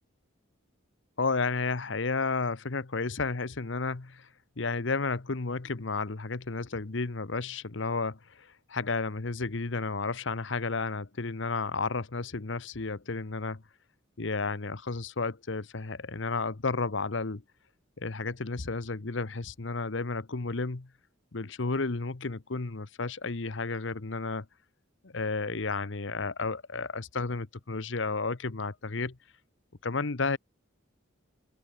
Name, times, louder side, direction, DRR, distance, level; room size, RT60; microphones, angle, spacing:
voice 1, 1.2-4.3 4.6-13.6 14.2-17.4 18.0-20.9 21.3-24.5 25.0-29.2 29.8-30.4, left 4 dB, 65° left, 1.0 m, -32 dB
open air
head